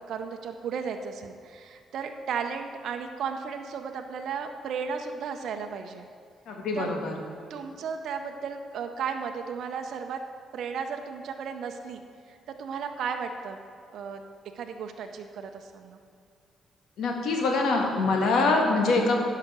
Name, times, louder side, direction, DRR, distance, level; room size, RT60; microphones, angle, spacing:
voice 1, 0.1-6.1 6.7-6.9 7.5-10.2 10.5-12.0 12.3-13.6 13.9-14.2 14.6-16.0, right 6 dB, 70° right, 5 dB, 0.7 m, -34 dB
voice 2, 6.5-7.1 17.0-19.2, left 3 dB, 75° left, 1 dB, 1.6 m, -24 dB
10.5 x 5.7 x 6.6 m, 2.2 s
cardioid pair, 90°, 0 cm